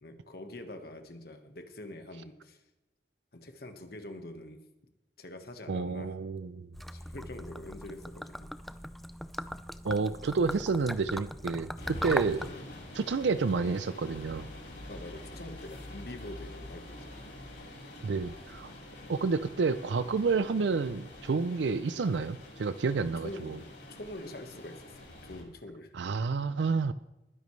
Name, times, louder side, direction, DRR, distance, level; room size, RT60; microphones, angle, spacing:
voice 1, 0.0-2.6 3.3-4.6 5.2-6.2 6.9-8.5 12.4-12.7 14.9-17.3 19.0-19.1 23.0-25.9, left 1 dB, 60° left, 6 dB, 1.4 m, -45 dB
voice 2, 5.7-6.7 9.8-12.5 13.0-14.5 18.0-18.7 19.1-23.6 25.9-26.9, right 4 dB, 85° right, 14 dB, 0.5 m, -30 dB
Gurgling / Liquid, 6.7-12.5, equal, ahead, 0.3 m, -39 dB
sound 1, 11.8-25.4, left 1 dB, 75° left, 5.6 m, -46 dB
20.5 x 10.5 x 3.2 m, 0.97 s
head